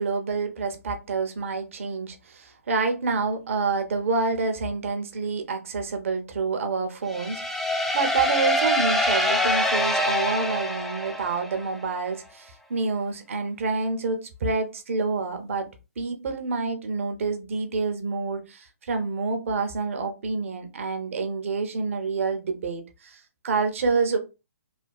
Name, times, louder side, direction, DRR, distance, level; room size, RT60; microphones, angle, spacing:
voice 1, 0.0-7.7 7.9-15.7 16.0-24.2, right 4 dB, 60° right, 6 dB, 0.7 m, -28 dB
sound 1, 7.1-11.8, equal, 5° left, 0.4 m, -25 dB
3.3 x 2.3 x 2.3 m, 0.28 s
figure-of-eight pair, 135°, 8 cm